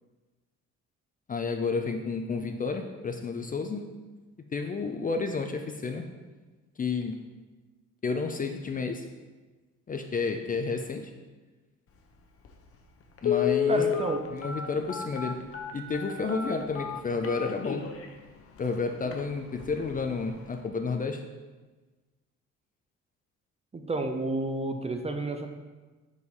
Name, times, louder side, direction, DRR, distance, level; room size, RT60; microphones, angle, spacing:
voice 1, 1.3-3.9 4.4-6.1 6.8-7.2 8.0-9.1 9.9-11.1 13.2-13.8 14.3-15.5 15.7-17.9 18.6-21.2, left 4 dB, 30° left, 6 dB, 0.5 m, -31 dB
Telephone, 12.5-12.6 13.2-18.1 18.6-18.7 19.0-19.2 19.6-19.9 20.2-20.3, left 8 dB, 50° left, 0.8 m, -30 dB
voice 2, 13.7-14.2 23.7-25.5, right 2 dB, 20° right, 5 dB, 0.6 m, -30 dB
5.2 x 4.8 x 4.0 m, 1.2 s
cardioid pair, 90°, 30 cm